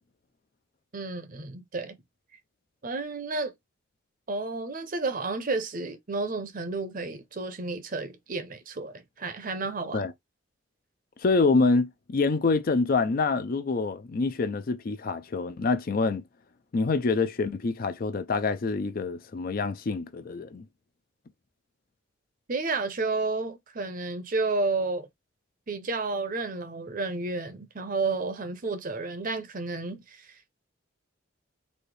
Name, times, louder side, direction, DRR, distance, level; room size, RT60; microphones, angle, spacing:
voice 1, 0.9-2.0 2.8-3.5 4.3-10.1 22.5-25.1 25.7-30.5, right 3 dB, 40° right, 0.7 m, -31 dB
voice 2, 11.2-16.2 16.7-20.6, left 3 dB, 45° left, 0.4 m, -26 dB
4.1 x 2.7 x 3.2 m
head